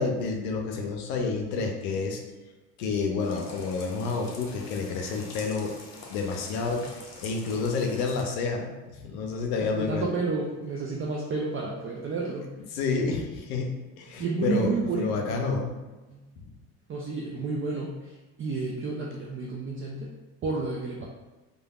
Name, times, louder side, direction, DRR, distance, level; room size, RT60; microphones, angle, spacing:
voice 1, 0.0-2.2 2.8-5.7 6.1-10.1 12.7-15.7, left 4 dB, 85° left, 2 dB, 0.6 m, -29 dB
sound 1, 3.2-8.2, left 3 dB, 40° left, 0.7 m, -46 dB
voice 2, 9.6-12.5 14.2-15.3 16.1-16.2 16.9-20.1 20.4-21.1, right 3 dB, 30° right, -2 dB, 0.4 m, -31 dB
3.2 x 2.3 x 2.3 m, 1.1 s
hypercardioid pair, 70°, 43 cm